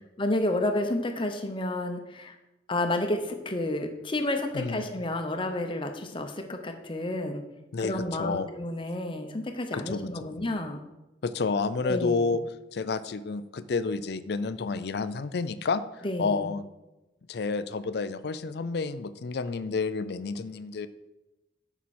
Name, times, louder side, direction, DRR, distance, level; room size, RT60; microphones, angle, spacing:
voice 1, 0.2-2.3 2.7-7.4 7.8-10.8 11.8-12.3 16.0-16.5, left 1 dB, 30° left, 5 dB, 0.9 m, -30 dB
voice 2, 4.5-4.9 7.7-8.5 9.7-10.0 11.2-12.4 12.7-16.7 17.3-20.9, left 4 dB, 60° left, 14 dB, 0.5 m, -30 dB
9.3 x 6.0 x 4.3 m, 1.0 s
head